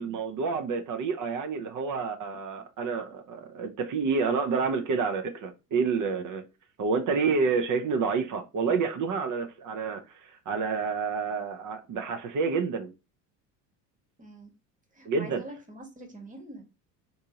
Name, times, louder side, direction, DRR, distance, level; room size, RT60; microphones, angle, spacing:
voice 1, 0.0-6.4 6.8-12.9 15.1-15.4, right 5 dB, 40° right, 0.6 m, -29 dB
voice 2, 14.2-14.5 14.9-16.6, right 1 dB, 15° right, 1.2 m, -44 dB
3.5 x 2.7 x 2.8 m
hypercardioid pair, 75°, 48 cm